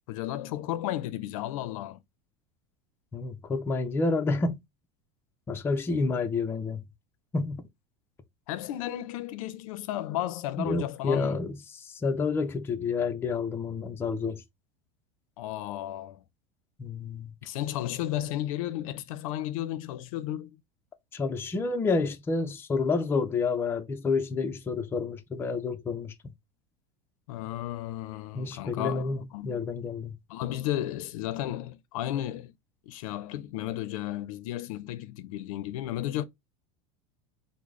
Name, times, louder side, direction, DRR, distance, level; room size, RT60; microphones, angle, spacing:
voice 1, 0.1-2.0 8.5-11.4 15.4-16.2 17.4-20.6 27.3-29.7 30.3-32.5 32.9-36.2, left 13 dB, 85° left, 0.5 m, -33 dB
voice 2, 3.1-4.6 5.5-6.8 7.3-7.6 10.6-14.4 16.8-17.3 21.1-26.1 28.3-30.1, left 4 dB, 15° left, 0.4 m, -29 dB
3.7 x 2.0 x 3.1 m
supercardioid pair, 150°, 17 cm